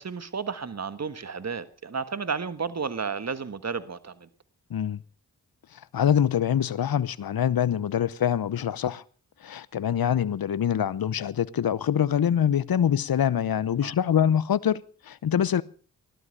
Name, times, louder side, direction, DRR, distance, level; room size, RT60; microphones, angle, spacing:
voice 1, 0.0-4.3 13.8-13.9, right 5 dB, 45° right, 1.4 m, -32 dB
voice 2, 5.9-9.0 9.4-15.6, left 9 dB, 70° left, 0.8 m, -24 dB
17.0 x 12.0 x 6.5 m
cardioid pair, 40°, 38 cm